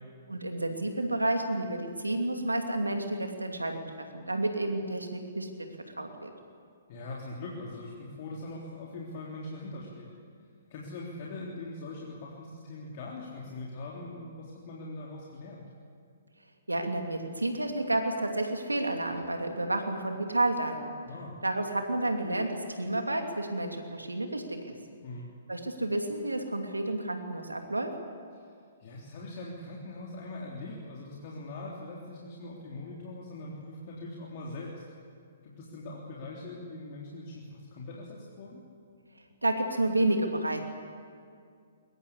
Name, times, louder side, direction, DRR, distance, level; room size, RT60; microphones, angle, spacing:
voice 1, 0.3-3.8 4.1-5.7 6.0-6.3 16.7-20.9 21.4-24.7 25.5-27.9 39.4-40.6, right 1 dB, 90° right, 4 dB, 2.8 m, -30 dB
voice 2, 6.9-10.1 10.7-15.6 21.0-21.3 25.0-25.3 28.8-34.7 35.4-38.6, left 2 dB, 45° left, -4 dB, 3.6 m, -41 dB
22.0 x 20.0 x 8.4 m, 2.2 s
figure-of-eight pair, 125°, 0 cm